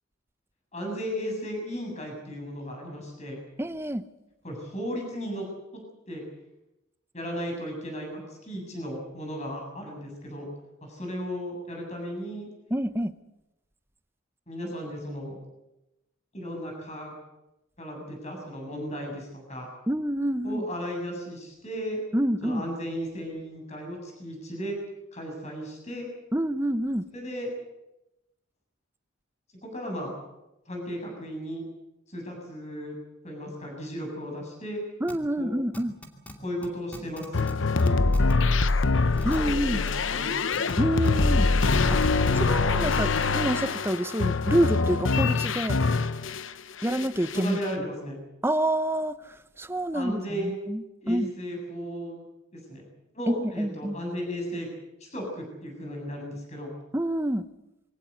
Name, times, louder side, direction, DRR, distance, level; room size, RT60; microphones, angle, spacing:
voice 1, 0.7-3.4 4.4-5.4 5.7-6.2 7.1-10.5 10.8-12.5 14.5-15.4 16.3-17.1 17.8-19.7 20.4-22.0 22.4-24.8 25.1-26.1 27.1-27.5 29.6-30.1 30.7-31.6 32.1-33.0 33.2-34.8 35.4-35.5 36.4-37.5 37.8-38.0 39.4-40.3 47.3-48.2 49.9-50.5 51.0-52.2 52.5-52.8 53.1-54.7 55.0-56.7, equal, 35° left, 1 dB, 7.5 m, -35 dB
voice 2, 3.6-4.0 12.7-13.1 19.9-20.6 22.1-22.6 26.3-27.0 35.0-35.9 39.2-39.8 40.8-41.5 41.9-42.0 42.3-45.8 46.8-47.6 48.4-51.3 53.3-54.0 56.9-57.5, right 1 dB, 10° right, 12 dB, 0.8 m, -27 dB
sound 1, 35.1-35.2 35.7-36.3 36.6-36.7 36.9-37.5 37.8-38.3 38.7-38.8 39.2-39.4 39.9-40.0 40.5-40.7 41.0-41.1 41.6-42.3 42.9-43.2, equal, 5° left, 2.4 m, -42 dB
sound 2, 37.3-46.5 46.8-47.6, left 3 dB, 65° left, 0.8 m, -24 dB
23.5 x 17.5 x 8.2 m, 0.94 s
head